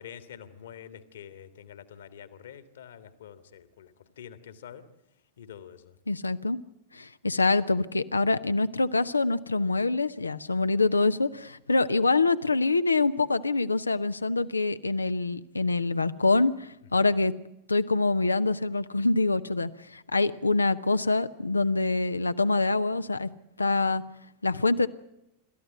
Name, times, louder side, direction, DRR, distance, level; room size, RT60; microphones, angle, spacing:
voice 1, 0.0-4.8 5.4-6.0 16.9-17.1, left 9 dB, 60° left, 12 dB, 1.8 m, -46 dB
voice 2, 6.1-6.6 6.9-17.4 17.7-23.3 23.6-24.0 24.4-24.9, left 3 dB, 80° left, 12 dB, 0.9 m, -25 dB
27.0 x 14.0 x 9.3 m, 0.85 s
figure-of-eight pair, 90°, 0 cm